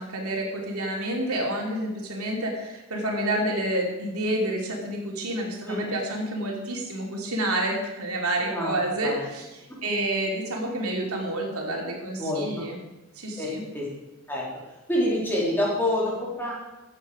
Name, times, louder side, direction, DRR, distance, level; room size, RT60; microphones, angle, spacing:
voice 1, 0.0-12.8 13.2-13.6, right 1 dB, 85° right, 0 dB, 3.0 m, -29 dB
voice 2, 8.5-9.2 12.2-12.7 13.4-13.5 13.7-13.9 14.3-14.5 14.9-16.5, left 1 dB, 10° left, -5 dB, 3.6 m, -27 dB
15.0 x 9.0 x 5.1 m, 1.0 s
head